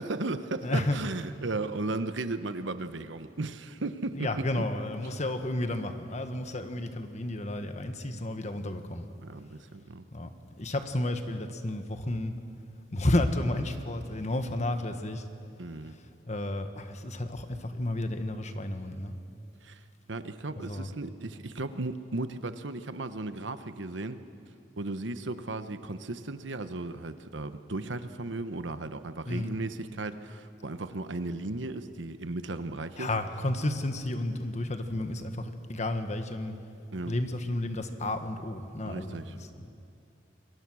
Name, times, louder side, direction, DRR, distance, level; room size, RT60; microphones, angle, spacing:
voice 1, 0.0-4.3 9.2-10.0 15.6-16.0 19.6-19.8 20.1-24.2 24.8-33.1 36.9-37.1 38.9-39.3, right 2 dB, 85° right, 10 dB, 1.1 m, -35 dB
voice 2, 0.6-1.0 4.1-9.1 10.1-10.3 10.6-12.4 12.9-15.2 15.9-19.1 20.5-20.9 29.3-29.5 33.0-36.5 37.0-39.7, left 1 dB, 40° left, 7 dB, 1.5 m, -32 dB
27.5 x 22.5 x 6.4 m, 2.6 s
head